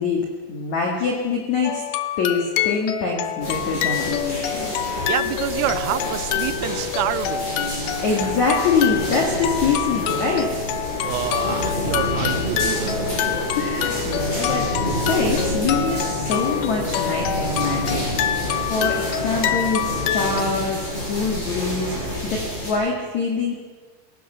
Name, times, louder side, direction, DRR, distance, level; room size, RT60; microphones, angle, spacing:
voice 1, 0.0-1.8 2.2-4.7 8.0-10.5 13.3-18.0 18.7-21.9 22.2-23.5, left 4 dB, 50° left, 0 dB, 2.5 m, -24 dB
sound 1, 1.6-20.4, left 10 dB, 85° left, 2.2 m, -27 dB
sound 2, 3.4-22.7, equal, 20° left, 7.3 m, -28 dB
voice 2, 5.0-7.6 11.0-13.1, right 15 dB, 85° right, 14 dB, 3.3 m, -28 dB
24.0 x 17.5 x 6.8 m, 1.4 s
omnidirectional pair, 5.8 m